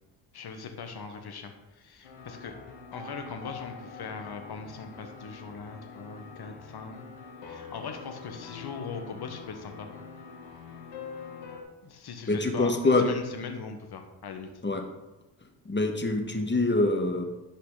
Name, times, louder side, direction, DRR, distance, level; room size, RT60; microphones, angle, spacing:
voice 1, 0.3-2.5 2.9-7.0 7.4-9.9 11.8-14.5, left 5 dB, 50° left, 5 dB, 1.5 m, -40 dB
sound 1, 2.0-11.6, left 5 dB, 80° left, 1.6 m, -45 dB
voice 2, 12.3-13.0 14.6-14.8 15.6-17.2, left 2 dB, 25° left, 4 dB, 1.7 m, -25 dB
11.5 x 5.7 x 4.0 m, 1.1 s
hypercardioid pair, 45°, 47 cm